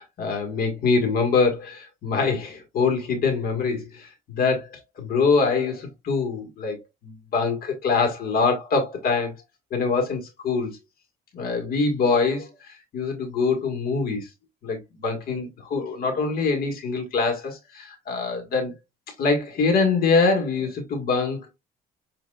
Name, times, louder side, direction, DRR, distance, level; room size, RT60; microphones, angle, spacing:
voice 1, 0.0-6.8 7.0-9.3 9.7-10.8 11.3-14.3 14.6-18.7 19.2-21.5, left 4 dB, 60° left, 1.5 m, -24 dB
7.5 x 2.7 x 2.3 m
cardioid pair, 110°, 17 cm